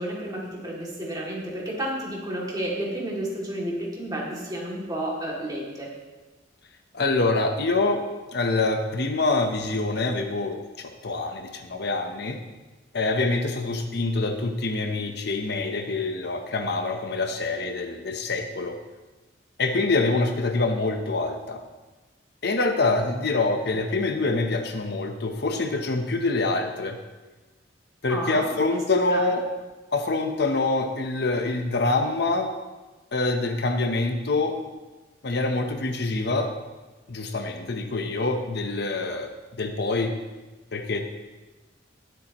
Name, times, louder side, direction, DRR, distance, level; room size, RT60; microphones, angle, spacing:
voice 1, 0.0-5.9 28.1-28.8 29.1-29.3, right 1 dB, 20° right, -4 dB, 2.6 m, -31 dB
voice 2, 6.9-8.0 8.3-12.4 12.9-18.8 19.6-21.6 22.4-27.0 28.0-29.4 29.9-32.5 33.1-34.6 35.2-36.6 37.1-39.3 39.6-40.1 40.7-41.0, left 3 dB, 60° left, 5 dB, 0.9 m, -25 dB
19.5 x 8.3 x 3.1 m, 1.2 s
head